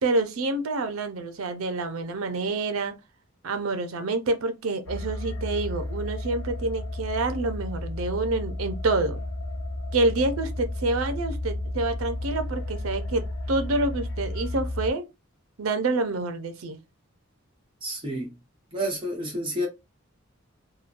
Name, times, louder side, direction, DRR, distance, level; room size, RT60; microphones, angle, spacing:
voice 1, 0.0-3.0 3.4-9.2 9.9-15.0 15.6-16.8, right 2 dB, 85° right, 0.6 m, -27 dB
sound 1, 4.9-14.9, left 1 dB, 65° left, 0.5 m, -33 dB
voice 2, 17.8-18.3 18.7-19.7, equal, 25° right, 1.1 m, -29 dB
3.0 x 2.2 x 2.5 m
head